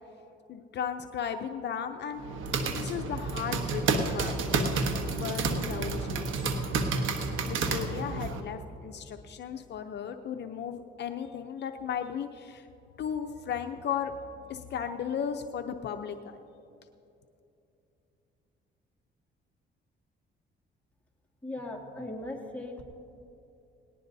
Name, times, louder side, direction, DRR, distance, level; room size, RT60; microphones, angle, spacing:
voice 1, 0.5-2.3 2.7-4.3 5.1-6.3 7.5-12.7 13.0-14.1 14.5-16.4, left 8 dB, 60° left, 6 dB, 0.7 m, -35 dB
sound 1, 2.2-8.4, right 4 dB, 80° right, 1.2 m, -30 dB
voice 2, 21.4-22.8, left 1 dB, 10° left, -2 dB, 2.3 m, -38 dB
18.5 x 18.5 x 2.7 m, 2.8 s
cardioid pair, 90°, 20 cm